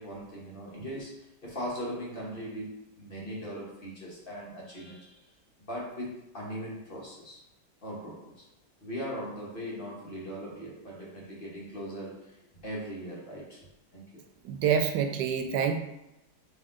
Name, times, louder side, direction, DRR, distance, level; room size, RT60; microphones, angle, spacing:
voice 1, 0.0-5.3 5.6-7.4 7.8-8.4 8.8-12.4 12.6-13.7 13.9-14.3, equal, 40° left, -5 dB, 1.0 m, -39 dB
voice 2, 14.4-15.8, right 7 dB, 90° right, 6 dB, 1.2 m, -27 dB
4.0 x 3.0 x 3.7 m, 0.90 s
omnidirectional pair, 1.8 m